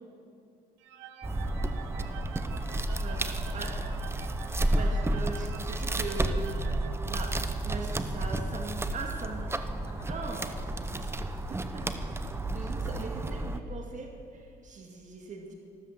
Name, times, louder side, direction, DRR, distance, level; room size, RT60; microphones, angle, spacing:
sound 1, 0.8-7.8, right 8 dB, 90° right, 1.2 m, -47 dB
sound 2, 1.2-13.6, right 1 dB, 15° right, 0.8 m, -31 dB
voice 1, 1.4-2.4 6.5-7.0 7.8-8.0 9.8-9.9 10.2-11.3, left 1 dB, 20° left, -1 dB, 4.0 m, -55 dB
voice 2, 4.7-6.5 7.0-7.3 7.6-9.8 10.1-10.4 11.5-11.9 12.5-15.5, right 4 dB, 45° right, 1 dB, 2.1 m, -40 dB
13.5 x 13.5 x 7.4 m, 2.4 s
cardioid pair, 110°, 18 cm